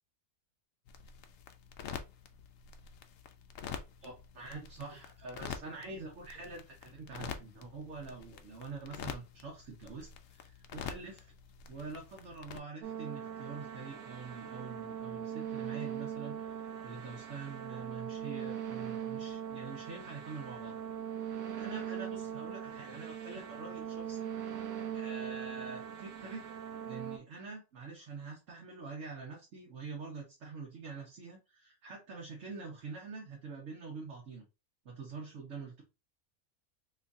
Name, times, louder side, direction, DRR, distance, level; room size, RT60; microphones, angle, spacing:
sound 1, 0.9-12.6, left 7 dB, 65° left, 0.7 m, -47 dB
voice 1, 4.0-11.3 11.7-20.8 21.6-24.3 24.9-26.4 26.8-34.4 34.8-35.8, right 4 dB, 65° right, -1 dB, 1.3 m, -45 dB
sound 2, 12.8-27.2, right 9 dB, 90° right, 1.1 m, -41 dB
3.1 x 2.6 x 3.5 m, 0.27 s
omnidirectional pair, 1.5 m